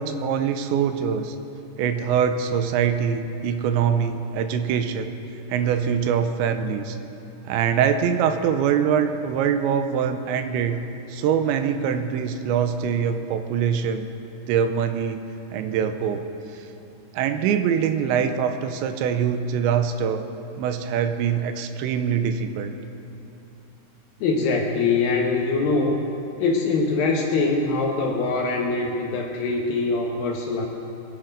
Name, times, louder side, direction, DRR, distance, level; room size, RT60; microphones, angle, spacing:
voice 1, 0.0-1.4 1.8-5.1 5.5-7.0 7.5-10.8 11.1-14.1 14.5-15.2 15.5-16.3 17.1-20.3 20.6-22.8, right 7 dB, 90° right, 8 dB, 3.0 m, -23 dB
voice 2, 24.2-26.0 26.4-30.7, left 3 dB, 70° left, 0 dB, 2.3 m, -23 dB
23.5 x 10.5 x 5.3 m, 2.9 s
omnidirectional pair, 5.2 m